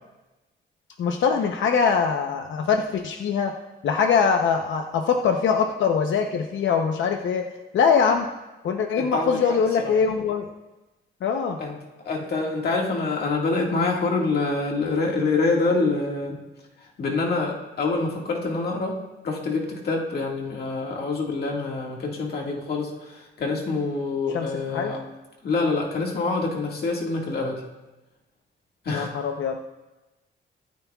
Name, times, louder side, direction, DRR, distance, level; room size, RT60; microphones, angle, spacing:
voice 1, 1.0-3.6 3.8-7.5 7.7-8.3 8.6-10.5 11.2-11.6 24.3-24.9 28.9-29.6, left 6 dB, 85° left, 3 dB, 0.8 m, -23 dB
voice 2, 8.9-9.9 11.6-16.4 16.8-19.0 19.2-25.0 25.4-27.6 28.8-29.1, left 3 dB, 55° left, -1 dB, 1.9 m, -26 dB
23.5 x 9.5 x 2.4 m, 1.1 s
wide cardioid pair, 175°, 19 cm